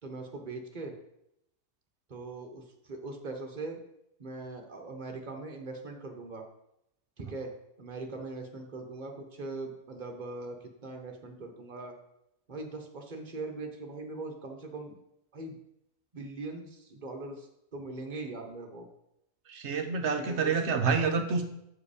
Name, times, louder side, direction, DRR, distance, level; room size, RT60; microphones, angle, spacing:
voice 1, 0.0-1.0 2.1-3.8 4.2-6.5 7.2-12.0 12.5-14.9 15.3-15.6 16.1-18.9 20.2-20.6, right 3 dB, 35° right, 3 dB, 1.0 m, -41 dB
voice 2, 19.5-21.4, right 5 dB, 55° right, 5 dB, 0.9 m, -28 dB
7.8 x 4.9 x 5.0 m, 0.80 s
omnidirectional pair, 1.7 m